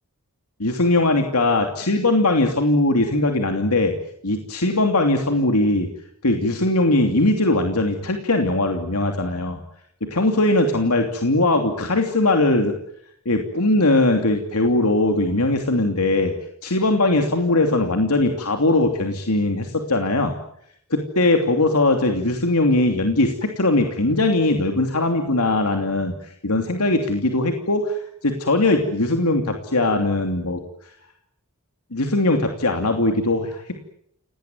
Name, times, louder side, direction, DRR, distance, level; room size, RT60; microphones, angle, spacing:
voice 1, 0.6-3.9 4.2-5.9 6.2-9.6 10.0-12.7 13.2-16.3 16.6-20.4 20.9-27.9 28.2-30.6 31.9-33.6, left 2 dB, 85° left, 4 dB, 2.9 m, -20 dB
28.0 x 19.0 x 9.2 m, 0.72 s
head